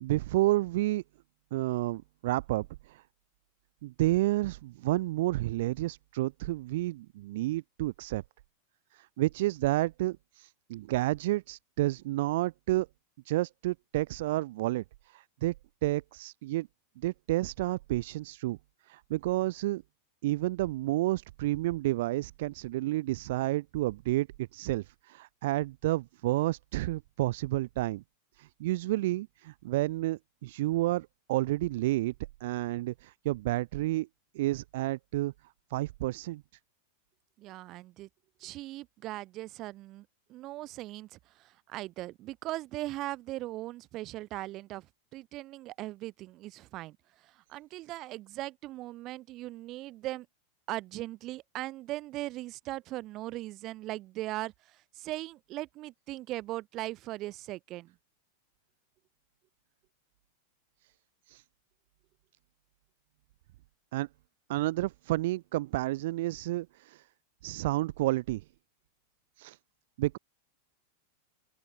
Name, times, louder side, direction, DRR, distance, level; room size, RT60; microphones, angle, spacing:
voice 1, 0.0-1.0 1.5-3.0 3.8-8.2 8.9-12.9 13.2-15.5 15.8-16.7 17.0-18.6 18.9-19.8 20.2-28.0 28.4-32.1 32.4-34.1 34.3-35.3 35.7-36.4 61.3-61.4 63.9-64.1 64.5-67.1 67.4-68.4 69.4-69.6 70.0-70.2, right 17 dB, 55° right, 1.0 m, -30 dB
voice 2, 37.4-38.1 38.4-44.9 45.1-47.0 47.2-50.3 50.7-57.9, right 17 dB, 35° right, 3.3 m, -39 dB
open air
figure-of-eight pair, 90°, 0 cm